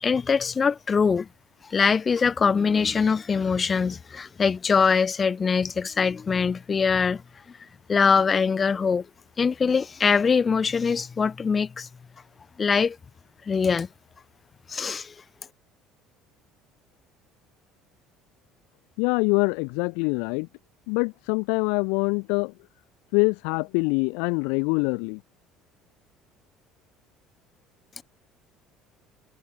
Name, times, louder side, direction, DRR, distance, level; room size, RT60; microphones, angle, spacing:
voice 1, 0.0-1.3 1.7-7.2 7.9-9.1 9.4-11.9 12.6-13.0 13.5-13.9 14.7-15.1, left 5 dB, 30° left, 0.5 m, -23 dB
voice 2, 19.0-20.5 20.9-22.5 23.1-25.2, left 37 dB, 65° left, 1.2 m, -24 dB
figure-of-eight pair, 60°, 0 cm